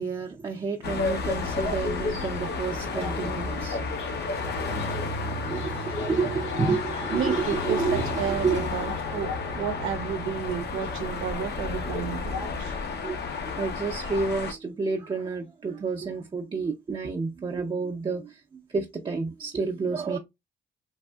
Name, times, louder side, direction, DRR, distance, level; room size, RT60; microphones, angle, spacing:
voice 1, 0.0-4.0 5.4-8.6 13.0-13.2 13.6-18.4 18.7-20.2, right 4 dB, 25° right, 0.5 m, -30 dB
sound 1, 0.8-14.5, left 4 dB, 55° left, 0.7 m, -32 dB
sound 2, 1.0-13.4, left 3 dB, 85° left, 1.0 m, -36 dB
voice 2, 7.1-12.8, right 8 dB, 85° right, 0.5 m, -32 dB
3.4 x 2.6 x 2.2 m
cardioid pair, 90°, 20 cm